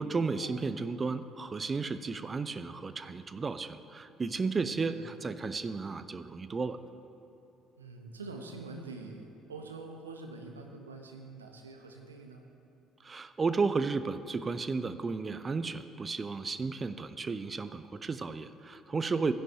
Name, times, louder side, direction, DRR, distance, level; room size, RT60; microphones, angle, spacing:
voice 1, 0.0-6.8 13.0-19.3, right 4 dB, 30° right, 12 dB, 0.5 m, -33 dB
voice 2, 7.8-12.4, right 3 dB, 85° right, 3 dB, 0.8 m, -45 dB
15.5 x 10.5 x 2.8 m, 2.9 s
figure-of-eight pair, 50°, 0 cm